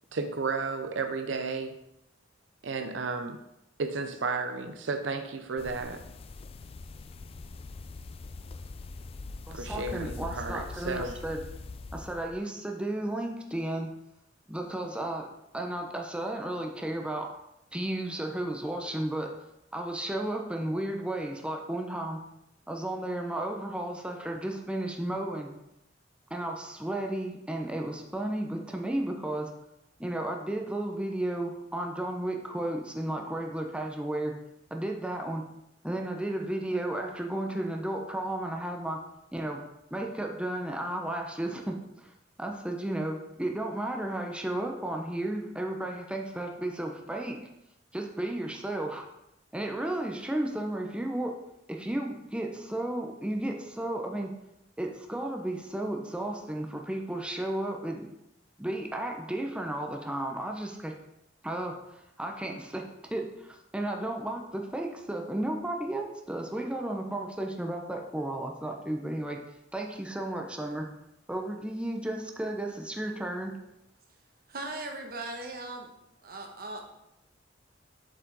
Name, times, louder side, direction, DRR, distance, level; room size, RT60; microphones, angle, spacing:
voice 1, 0.1-1.7 2.6-3.4 3.8-6.0 9.5-11.2, right 4 dB, 80° right, 7 dB, 0.6 m, -33 dB
sound 1, 5.6-12.4, left 3 dB, 30° left, 0.3 m, -42 dB
voice 2, 9.5-11.4 11.9-13.9 14.5-15.3 15.5-17.3 17.7-19.3 19.7-22.2 22.7-25.5 26.3-29.5 30.0-34.3 34.7-35.4 35.8-39.0 39.3-39.6 39.9-47.4 47.9-49.0 49.5-51.3 51.7-54.3 54.8-58.0 58.6-60.9 61.4-69.4 69.7-70.9 71.3-73.5, right 1 dB, 5° right, 2 dB, 0.6 m, -33 dB
voice 3, 74.5-75.9 76.2-76.8, right 2 dB, 55° right, 3 dB, 1.1 m, -38 dB
7.3 x 4.9 x 4.0 m, 0.85 s
head